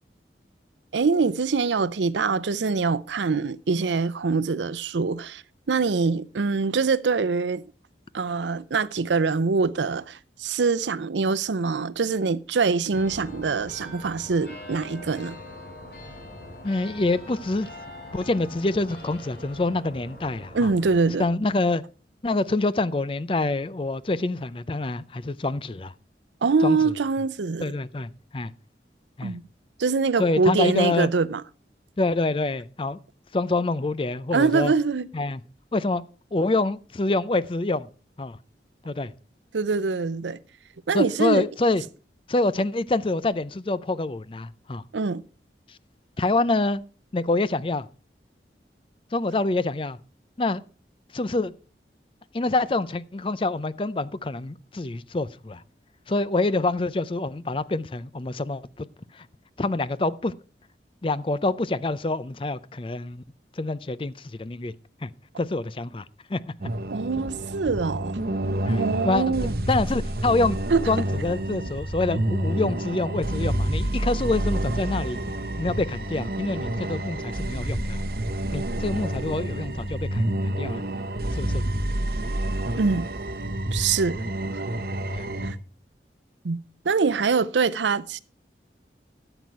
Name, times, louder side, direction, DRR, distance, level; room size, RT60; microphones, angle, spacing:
voice 1, 0.9-5.4 5.7-7.6 8.1-15.4 20.5-21.3 26.4-27.7 29.2-29.4 29.8-31.4 34.3-35.1 39.5-40.4 40.9-41.4 44.9-45.2 66.9-68.2 68.7-69.5 70.7-70.8 82.8-83.1 83.7-84.3 85.4-85.6 86.4-86.6 86.8-88.2, right 4 dB, 90° right, 0.6 m, -24 dB
sound 1, 12.9-21.1, left 1 dB, 55° left, 4.6 m, -42 dB
voice 2, 16.6-17.7 18.1-20.7 21.2-21.8 22.2-25.9 26.6-26.8 27.6-28.5 29.2-29.4 30.2-31.1 32.0-33.0 33.3-34.7 35.1-35.4 35.7-36.0 36.3-37.9 38.2-38.4 38.8-39.1 40.9-41.8 42.3-44.8 45.7-45.8 46.2-46.8 47.1-47.9 49.1-50.0 50.4-50.6 51.1-51.5 52.3-55.6 56.1-58.9 59.1-59.3 59.6-60.3 61.0-63.2 63.6-64.7 65.0-65.1 65.4-66.0 66.3-66.5 68.7-69.4 69.7-70.6 70.9-75.2 75.6-78.0 78.5-80.8 81.3-81.6 85.1-85.3, left 2 dB, 30° left, 0.5 m, -26 dB
sound 2, 66.6-85.5, right 1 dB, 55° right, 1.2 m, -28 dB
13.5 x 8.0 x 4.6 m
head